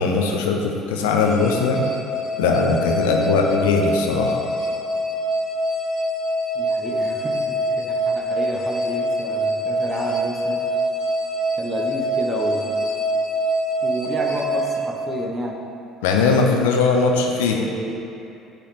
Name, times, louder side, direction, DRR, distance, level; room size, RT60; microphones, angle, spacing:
voice 1, 0.0-1.8 2.4-4.4 16.0-17.6, left 4 dB, 90° left, 2 dB, 0.6 m, -19 dB
sound 1, 1.2-15.6, right 1 dB, 60° left, 1.3 m, -25 dB
voice 2, 6.5-10.7 11.5-12.9 13.8-15.6 17.4-18.0, right 1 dB, 25° right, 0 dB, 1.0 m, -30 dB
6.6 x 3.3 x 5.8 m, 2.8 s
supercardioid pair, 80°, 0 cm